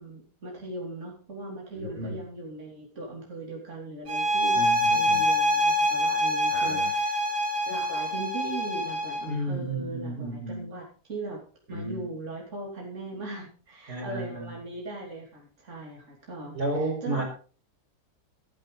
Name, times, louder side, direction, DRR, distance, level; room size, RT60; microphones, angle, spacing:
voice 1, 0.0-7.3 7.7-11.4 11.7-17.2, right 2 dB, 45° right, -2 dB, 3.4 m, -39 dB
voice 2, 1.7-2.2 4.5-5.2 6.5-6.9 9.3-10.7 11.7-12.1 13.9-14.5 16.5-17.2, right 1 dB, 70° right, 2 dB, 5.0 m, -32 dB
sound 1, 4.1-9.3, equal, 90° right, 2.9 m, -25 dB
14.5 x 13.0 x 4.0 m, 0.38 s
omnidirectional pair, 1.8 m